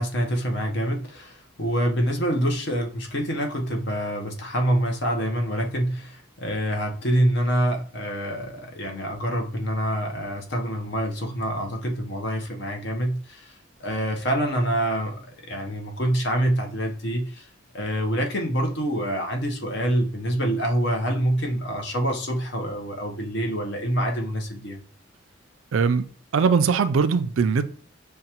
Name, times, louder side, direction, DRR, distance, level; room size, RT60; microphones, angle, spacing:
voice 1, 0.0-13.5 13.8-17.4 17.7-24.8, equal, 55° left, 0.8 m, -26 dB
voice 2, 25.7-26.1 26.3-27.6, right 5 dB, 75° right, 0.4 m, -20 dB
6.4 x 2.2 x 2.8 m
head